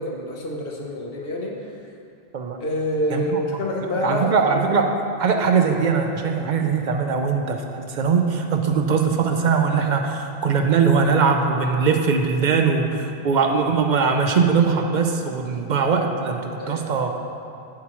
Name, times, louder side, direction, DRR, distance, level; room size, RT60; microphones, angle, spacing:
voice 1, 0.0-1.7 2.6-4.8 12.4-12.5 16.6-16.8, left 1 dB, 65° left, -1 dB, 1.1 m, -27 dB
voice 2, 3.1-3.4 4.0-4.9 5.2-17.1, right 5 dB, 55° right, 4 dB, 0.6 m, -21 dB
7.5 x 7.3 x 3.0 m, 2.6 s
omnidirectional pair, 1.0 m